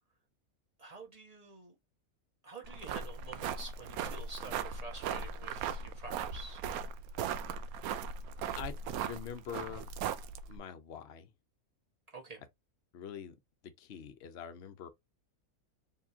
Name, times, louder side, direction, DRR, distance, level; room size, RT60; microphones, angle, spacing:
voice 1, 0.8-1.7 2.4-6.6 12.1-12.4, right 3 dB, 25° right, 1.5 m, -48 dB
sound 1, 2.6-10.6, right 7 dB, 85° right, 1.1 m, -38 dB
voice 2, 9.0-9.9 10.5-11.3 12.9-13.3 13.6-14.9, left 8 dB, 50° left, 1.0 m, -44 dB
4.6 x 3.3 x 2.8 m
omnidirectional pair, 1.5 m